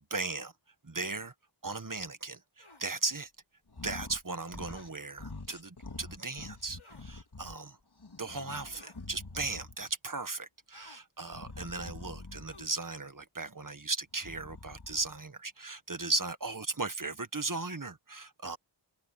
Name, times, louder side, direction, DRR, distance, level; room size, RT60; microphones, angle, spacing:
voice 1, 0.1-0.5 0.8-1.3 1.6-3.3 3.8-7.8 8.2-18.6, right 3 dB, 40° right, 1.7 m, -37 dB
sound 1, 2.6-2.9 4.7-4.9 6.8-7.1 8.7-9.1 10.7-11.0 12.5-12.8, left 2 dB, 80° left, 5.8 m, -56 dB
sound 2, 3.7-4.2 4.5-4.9 5.2-7.6 8.0-9.9 11.3-12.7 14.1-15.2, left 3 dB, 55° left, 2.7 m, -46 dB
wide cardioid pair, 45°, 47 cm